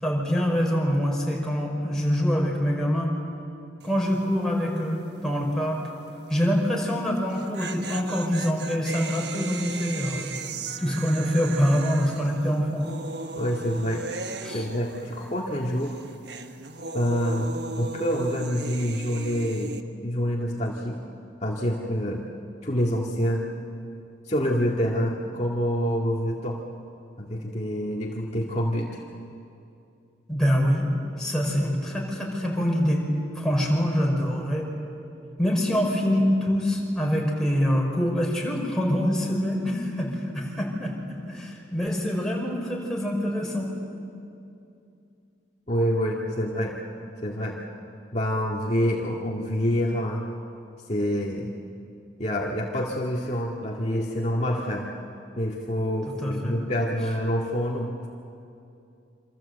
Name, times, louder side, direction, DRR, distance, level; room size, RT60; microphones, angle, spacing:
voice 1, 0.0-3.1 3.8-5.8 6.3-10.3 10.8-12.9 14.4-14.7 30.3-30.9 31.2-33.0 33.3-34.7 35.4-40.9 41.3-43.7 56.1-56.5, equal, 5° left, -2 dB, 5.1 m, -25 dB
sound 1, 3.8-4.2 4.4-4.5 7.2-15.5 15.8-19.8, right 3 dB, 65° right, 1.3 m, -37 dB
voice 2, 13.4-14.1 14.5-16.0 16.9-19.7 20.0-21.0 21.4-22.2 22.6-23.5 24.3-26.6 27.2-29.0 45.7-46.8 47.2-47.6 48.1-50.3 50.9-51.5 52.2-54.9 55.4-58.1, equal, 40° left, -2 dB, 2.1 m, -27 dB
28.0 x 26.0 x 8.2 m, 2.6 s
head